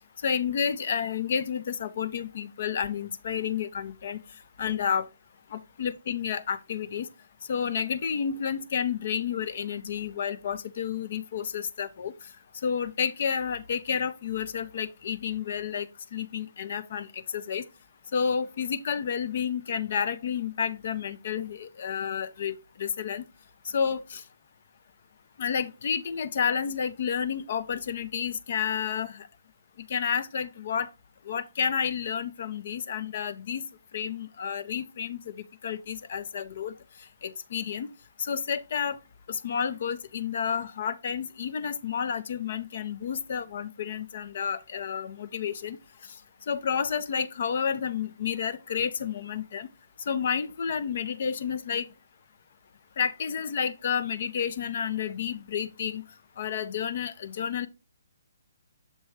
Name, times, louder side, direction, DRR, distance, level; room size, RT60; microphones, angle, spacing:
voice 1, 0.2-4.2 4.6-5.1 5.5-7.1 7.5-12.1 12.6-17.6 18.1-23.2 23.7-24.2 25.4-29.3 29.9-30.9 31.3-33.6 33.9-35.3 35.6-36.7 37.2-37.9 38.2-39.0 39.3-45.8 46.5-49.7 50.1-51.9 53.0-56.0 56.4-57.7, left 7 dB, 55° left, 0.5 m, -30 dB
6.6 x 3.1 x 4.6 m
hypercardioid pair, 145°, 0 cm